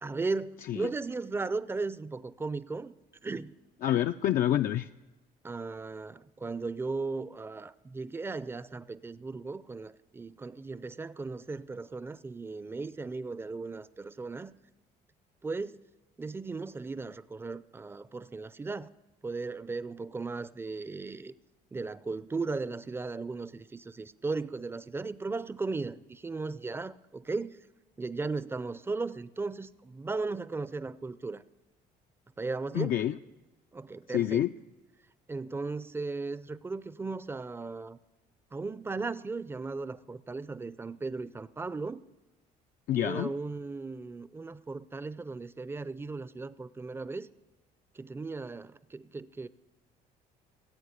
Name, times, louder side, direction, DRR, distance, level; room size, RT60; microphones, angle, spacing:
voice 1, 0.0-2.9 3.2-3.5 5.4-14.5 15.4-15.8 16.2-18.9 19.2-21.3 21.7-27.6 28.0-31.4 32.4-32.9 33.7-34.5 35.3-38.0 38.5-42.0 43.0-47.3 47.9-49.5, right 3 dB, 15° right, 16 dB, 0.5 m, -36 dB
voice 2, 3.8-4.9 32.7-33.2 34.1-34.5 42.9-43.3, left 11 dB, 55° left, 7 dB, 0.4 m, -27 dB
16.0 x 8.3 x 8.1 m, 1.1 s
cardioid pair, 110°, 17 cm